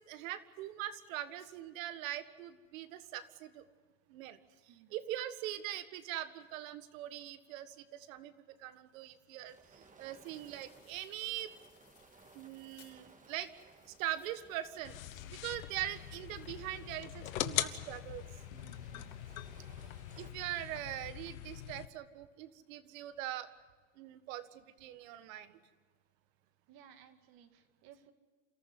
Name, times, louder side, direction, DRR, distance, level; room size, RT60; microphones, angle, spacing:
voice 1, 0.0-3.6 4.1-4.4 4.9-8.3 8.6-11.5 12.3-13.5 13.9-15.1 15.4-18.2 20.2-23.5 24.0-25.6, right 13 dB, 75° right, 11 dB, 1.7 m, -42 dB
sound 1, 9.4-20.3, right 4 dB, 20° right, 1.9 m, -61 dB
sound 2, 10.2-16.9, left 12 dB, 55° left, 5.1 m, -67 dB
sound 3, 14.8-21.9, left 14 dB, 85° left, 1.2 m, -42 dB
voice 2, 18.5-19.5 26.7-28.1, right 9 dB, 60° right, 7 dB, 2.5 m, -60 dB
28.5 x 14.0 x 9.7 m, 1.4 s
supercardioid pair, 105°, 40 cm